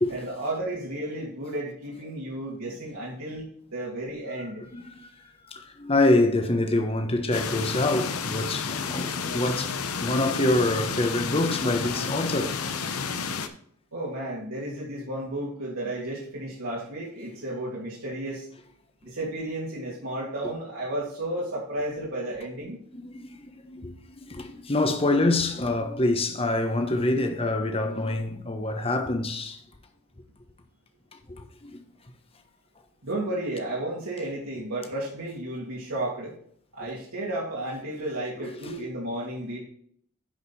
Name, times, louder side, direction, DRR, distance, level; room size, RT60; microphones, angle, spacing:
voice 1, 0.1-4.6 13.9-18.5 19.0-22.8 33.0-36.3 36.7-39.6, right 1 dB, 75° right, 2.7 m, -33 dB
voice 2, 4.7-5.1 5.5-12.7 22.9-29.6 31.3-31.8 38.4-38.7, left 2 dB, 25° left, 1.1 m, -26 dB
sound 1, 7.3-13.5, left 5 dB, 85° left, 0.9 m, -31 dB
10.5 x 5.4 x 4.2 m
head